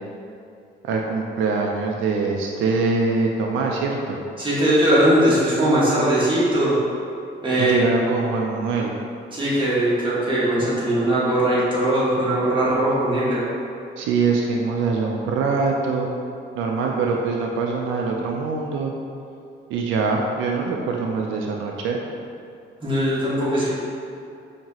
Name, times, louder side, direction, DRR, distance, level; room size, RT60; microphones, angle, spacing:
voice 1, 0.8-4.2 7.6-8.9 14.0-16.1 16.6-18.9 19.7-22.0, right 4 dB, 80° right, 0 dB, 0.4 m, -23 dB
voice 2, 4.4-6.8 7.4-7.8 9.3-13.4 22.8-23.7, right 1 dB, 25° right, -9 dB, 1.4 m, -20 dB
4.5 x 2.9 x 2.8 m, 2.5 s
cardioid pair, 90°, 20 cm